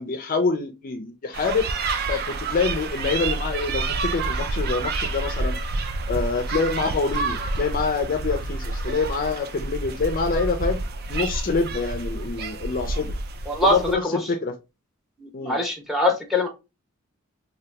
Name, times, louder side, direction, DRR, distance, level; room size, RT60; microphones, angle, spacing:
voice 1, 0.0-1.7 2.1-5.6 6.1-10.8 11.1-13.1 13.6-14.5 15.3-15.6, left 4 dB, 45° left, 6 dB, 0.4 m, -26 dB
sound 1, 1.3-13.9, right 3 dB, 50° right, 0.4 m, -28 dB
voice 2, 15.2-16.5, left 1 dB, ahead, 2 dB, 0.7 m, -22 dB
2.8 x 2.2 x 3.2 m, 0.26 s
head